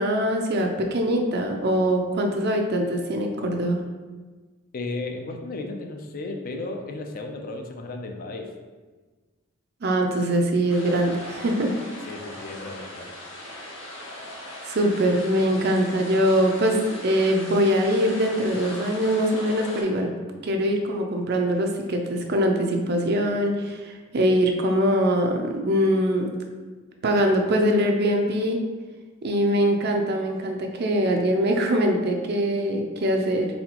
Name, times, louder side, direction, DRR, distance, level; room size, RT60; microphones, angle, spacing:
voice 1, 0.0-3.8 9.8-11.7 14.7-16.8 17.0-20.1 20.4-26.3 27.0-28.6 29.2-33.5, equal, 55° right, 3 dB, 0.5 m, -23 dB
voice 2, 4.7-8.5 12.0-13.1, left 2 dB, 45° left, 3 dB, 0.4 m, -34 dB
sound 1, 10.7-19.8, left 1 dB, 75° left, 0.9 m, -39 dB
4.1 x 3.8 x 2.9 m, 1.3 s
head